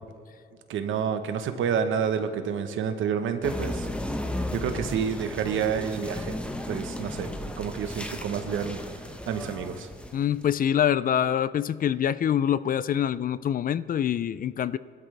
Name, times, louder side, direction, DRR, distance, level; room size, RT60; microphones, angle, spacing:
voice 1, 0.7-3.9 4.5-6.4 6.7-8.8 9.3-9.9, right 7 dB, 75° right, 8 dB, 1.2 m, -29 dB
sound 1, 3.4-10.4, left 1 dB, 5° left, 1.2 m, -34 dB
voice 2, 10.1-14.8, left 9 dB, 45° left, 17 dB, 0.4 m, -25 dB
20.0 x 12.5 x 3.4 m, 2.2 s
cardioid pair, 90°, 20 cm